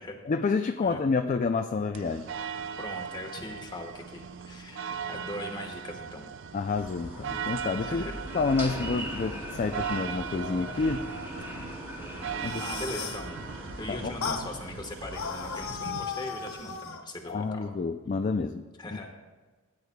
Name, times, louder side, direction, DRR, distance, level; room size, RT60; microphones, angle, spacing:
voice 1, 0.3-2.3 6.5-8.1 8.3-11.1 12.4-12.6 13.9-14.1 17.3-18.6, left 4 dB, 35° left, 7 dB, 0.3 m, -29 dB
sound 1, 1.9-16.8, right 7 dB, 60° right, 0.4 m, -39 dB
voice 2, 2.8-6.3 7.8-8.2 12.6-17.8 18.8-19.3, left 1 dB, 20° left, 2 dB, 1.3 m, -40 dB
sound 2, 6.7-15.8, equal, 10° right, 2.3 m, -40 dB
sound 3, 12.3-13.3 14.2-14.5 15.1-17.0, left 6 dB, 85° left, 0.8 m, -35 dB
17.0 x 9.7 x 2.2 m, 1.4 s
head